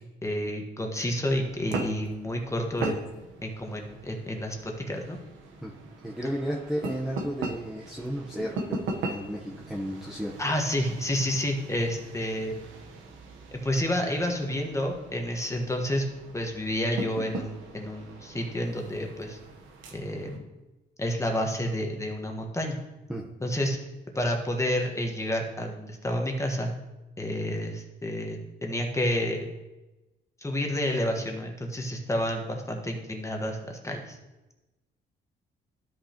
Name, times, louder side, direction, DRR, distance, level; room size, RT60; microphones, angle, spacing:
voice 1, 0.2-3.0 3.4-5.2 10.4-12.6 13.5-19.4 19.9-20.5 21.0-22.8 23.4-23.8 24.1-26.7 27.2-29.5 30.4-34.2, left 1 dB, 15° left, 2 dB, 1.4 m, -30 dB
sound 1, 1.3-20.4, right 3 dB, 90° right, 1.1 m, -40 dB
voice 2, 6.0-10.3 23.1-23.2, equal, ahead, -4 dB, 1.0 m, -33 dB
12.5 x 5.6 x 2.9 m, 1.1 s
cardioid pair, 90°, 20 cm